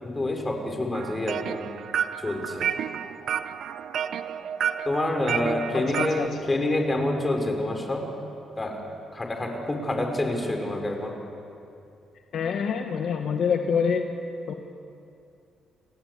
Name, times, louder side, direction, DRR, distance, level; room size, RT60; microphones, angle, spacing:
voice 1, 0.0-1.6 2.2-2.7 4.9-8.1 8.6-8.8 9.1-11.2, left 1 dB, 20° left, 3 dB, 5.3 m, -27 dB
sound 1, 0.9-6.3, right 8 dB, 70° right, 0.7 m, -31 dB
voice 2, 5.7-6.4 12.3-14.0 14.5-14.6, left 6 dB, 65° left, 4 dB, 1.6 m, -26 dB
29.5 x 17.5 x 8.2 m, 2.6 s
cardioid pair, 90°, 0 cm